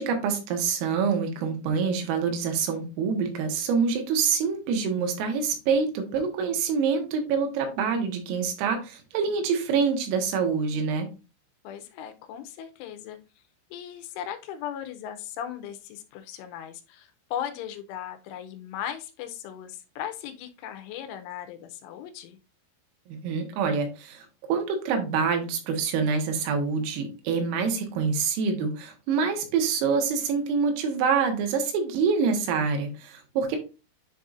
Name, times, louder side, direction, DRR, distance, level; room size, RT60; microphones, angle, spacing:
voice 1, 0.0-11.1 23.1-33.6, right 5 dB, 85° right, 4 dB, 3.9 m, -26 dB
voice 2, 11.6-13.2 13.7-22.4, left 10 dB, 85° left, 8 dB, 3.1 m, -37 dB
10.0 x 4.0 x 2.5 m, 0.31 s
omnidirectional pair, 5.8 m